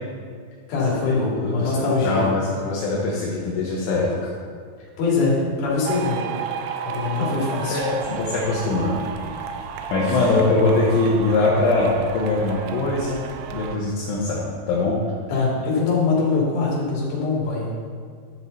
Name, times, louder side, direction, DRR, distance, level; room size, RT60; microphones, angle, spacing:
voice 1, 0.7-2.3 5.0-6.2 6.8-7.8 10.0-10.3 15.3-17.7, left 4 dB, 50° left, -6 dB, 4.3 m, -23 dB
voice 2, 2.0-4.3 7.2-7.3 7.7-9.1 9.9-13.2 13.5-15.0, left 2 dB, 75° left, -5 dB, 3.4 m, -22 dB
sound 1, 5.9-13.8, right 7 dB, 85° right, 3.2 m, -32 dB
13.0 x 7.1 x 4.1 m, 2.1 s
omnidirectional pair, 5.6 m